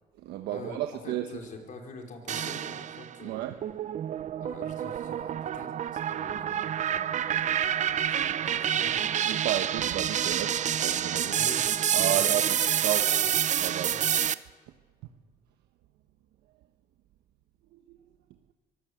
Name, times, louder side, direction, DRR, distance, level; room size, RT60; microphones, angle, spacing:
voice 1, 0.2-1.3 3.2-3.6 4.2-4.3 9.3-11.3 11.9-13.1 13.6-13.9 17.7-17.8, right 13 dB, 80° right, 5 dB, 1.2 m, -32 dB
voice 2, 1.0-3.4 4.4-9.0 11.2-11.6 11.9-12.5 13.0-13.2 13.9-14.0, left 3 dB, 50° left, 1 dB, 4.8 m, -46 dB
sound 1, 2.3-3.1 3.6-14.3, right 9 dB, 45° right, 0.8 m, -28 dB
23.5 x 17.0 x 8.1 m, 1.4 s
cardioid pair, 110°, 17 cm